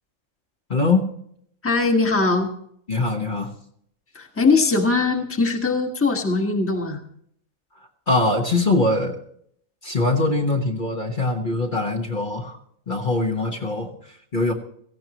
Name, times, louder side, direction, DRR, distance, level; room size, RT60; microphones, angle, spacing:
voice 1, 0.7-1.1 2.9-3.5 8.1-9.2 9.8-12.6 12.9-14.5, left 2 dB, 40° left, 0 dB, 1.4 m, -22 dB
voice 2, 1.6-2.5 4.1-7.0, left 3 dB, 10° left, 3 dB, 1.3 m, -21 dB
17.5 x 15.5 x 3.0 m, 0.67 s
omnidirectional pair, 1.4 m